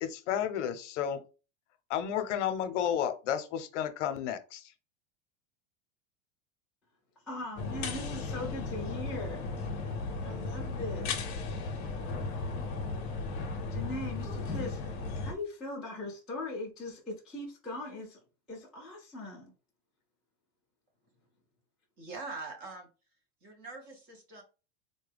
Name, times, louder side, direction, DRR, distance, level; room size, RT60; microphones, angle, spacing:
voice 1, 0.0-1.2 1.9-4.6, left 9 dB, 75° left, 0.7 m, -32 dB
voice 2, 7.2-9.5 10.2-11.3 11.9-12.2 13.7-18.2 18.5-19.5, left 2 dB, ahead, 0.3 m, -40 dB
sound 1, 7.6-15.3, left 3 dB, 35° left, 0.7 m, -35 dB
voice 3, 22.0-22.9 23.4-24.4, right 3 dB, 25° right, 0.8 m, -43 dB
4.2 x 2.2 x 3.3 m
supercardioid pair, 180°, 36 cm